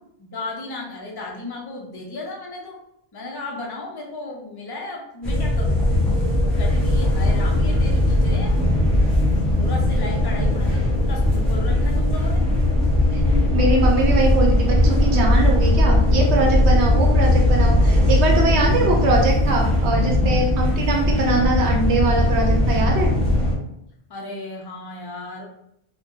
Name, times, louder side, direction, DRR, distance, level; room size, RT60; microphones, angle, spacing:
voice 1, 0.2-2.8 3.1-5.8 6.4-8.5 9.5-12.4 24.1-25.4, left 2 dB, 40° left, -1 dB, 0.3 m, -34 dB
sound 1, 5.2-23.5, left 1 dB, ahead, 0.7 m, -19 dB
voice 2, 13.5-23.1, right 2 dB, 70° right, 0 dB, 0.9 m, -22 dB
2.7 x 2.1 x 3.6 m, 0.79 s
omnidirectional pair, 1.2 m